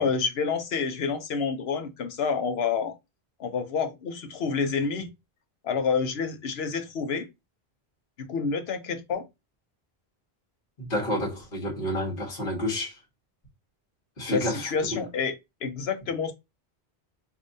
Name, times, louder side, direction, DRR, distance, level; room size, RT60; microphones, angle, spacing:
voice 1, 0.0-2.9 3.4-5.1 5.6-7.3 8.2-9.2 14.3-16.3, left 5 dB, 80° left, 1.0 m, -28 dB
voice 2, 10.8-13.0 14.2-14.7, left 1 dB, 60° left, 1.5 m, -29 dB
4.9 x 2.7 x 2.6 m
omnidirectional pair, 1.0 m